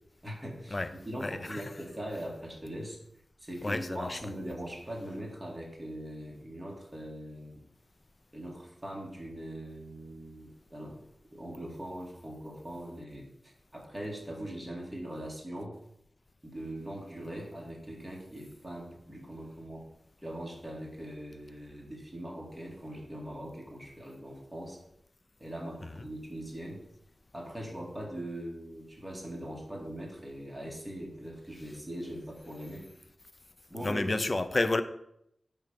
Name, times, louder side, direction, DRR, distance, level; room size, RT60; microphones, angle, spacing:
voice 1, 0.2-3.0 3.4-7.6 8.3-11.0 11.3-15.7 16.4-19.8 20.2-24.8 25.4-26.8 27.3-32.9 33.7-34.3, right 1 dB, 5° right, -2 dB, 2.3 m, -41 dB
voice 2, 1.2-1.7 3.6-4.2 33.8-34.8, left 2 dB, 40° left, 11 dB, 0.6 m, -30 dB
9.0 x 3.5 x 5.2 m, 0.76 s
cardioid pair, 45°, 0 cm